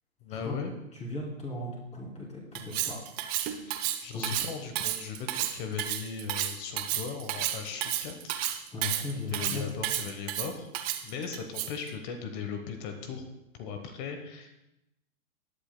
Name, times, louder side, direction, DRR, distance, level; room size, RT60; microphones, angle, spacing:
voice 1, 0.2-0.7 3.6-3.7 4.0-8.5 9.3-10.7 11.0-13.3 13.5-14.6, left 6 dB, 35° left, 6 dB, 1.1 m, -38 dB
voice 2, 0.9-3.0 4.1-4.3 8.7-9.6, left 2 dB, 15° left, -4 dB, 3.2 m, -37 dB
Cutlery silverware, 2.6-11.9, right 12 dB, 25° right, 0.6 m, -32 dB
18.5 x 8.6 x 2.2 m, 0.90 s
hypercardioid pair, 135°, 41 cm